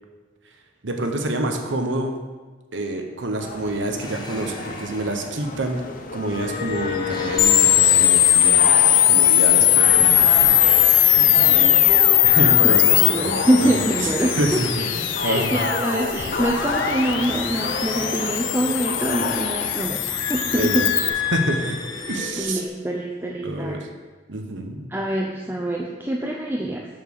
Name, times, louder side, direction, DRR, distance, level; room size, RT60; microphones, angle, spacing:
voice 1, 0.8-2.2 2.7-5.8 6.1-10.3 10.8-11.9 12.2-13.3 13.6-13.7 14.4-14.9 15.2-15.6 20.5-20.9 21.3-21.8 22.1-22.6 23.4-23.9 24.3-24.9, right 1 dB, 80° right, 4 dB, 1.1 m, -27 dB
sound 1, 3.4-19.8, left 3 dB, 45° left, 0.7 m, -30 dB
sound 2, 4.0-12.7 12.9-22.7, left 4 dB, 25° left, 1.0 m, -34 dB
sound 3, 7.4-21.1, left 12 dB, 85° left, 0.5 m, -19 dB
voice 2, 12.6-14.6 15.2-20.0 20.3-20.8 22.4-23.8 24.9-26.9, right 1 dB, 10° right, -1 dB, 0.5 m, -24 dB
6.4 x 6.3 x 6.7 m, 1.3 s
head